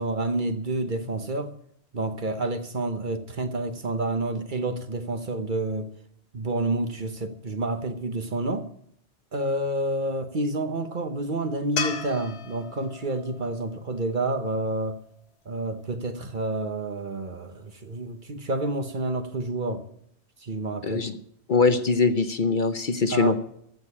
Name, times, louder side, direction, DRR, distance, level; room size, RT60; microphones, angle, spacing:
voice 1, 0.0-1.5 1.9-5.9 6.3-8.7 9.3-15.0 15.5-19.9 20.4-21.0 23.1-23.4, right 2 dB, 45° right, 1.2 m, -29 dB
sound 1, 11.8-15.0 18.3-18.4, left 5 dB, 65° left, 1.3 m, -35 dB
voice 2, 20.8-21.1 21.5-23.4, left 4 dB, 50° left, 0.9 m, -22 dB
15.0 x 6.6 x 8.5 m
omnidirectional pair, 1.2 m